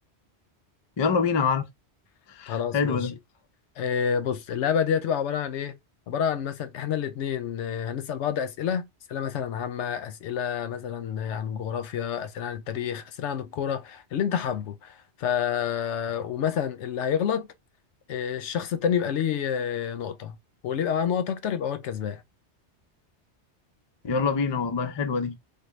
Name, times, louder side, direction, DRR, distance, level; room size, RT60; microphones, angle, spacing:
voice 1, 1.0-1.7 2.3-3.1 24.0-25.3, left 5 dB, 45° left, 0.3 m, -25 dB
voice 2, 2.5-3.1 3.8-5.8 6.1-17.5 18.1-20.4 20.6-22.2, left 8 dB, 90° left, 0.9 m, -28 dB
3.6 x 2.3 x 3.0 m
omnidirectional pair, 1.2 m